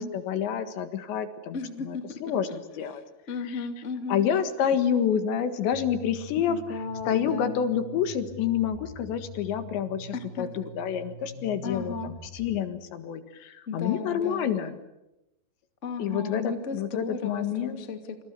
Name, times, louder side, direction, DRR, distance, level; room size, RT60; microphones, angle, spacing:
voice 1, 0.0-2.5 2.8-3.0 3.5-3.6 4.1-14.7 16.0-17.8, left 8 dB, 70° left, 9 dB, 3.8 m, -28 dB
voice 2, 1.5-4.3 6.5-7.6 10.1-10.5 11.6-12.1 13.7-14.5 15.8-18.2, left 4 dB, 25° left, 6 dB, 1.7 m, -35 dB
sound 1, 5.7-12.6, left 2 dB, 45° left, 4.7 m, -44 dB
27.5 x 27.5 x 6.9 m, 0.93 s
omnidirectional pair, 5.6 m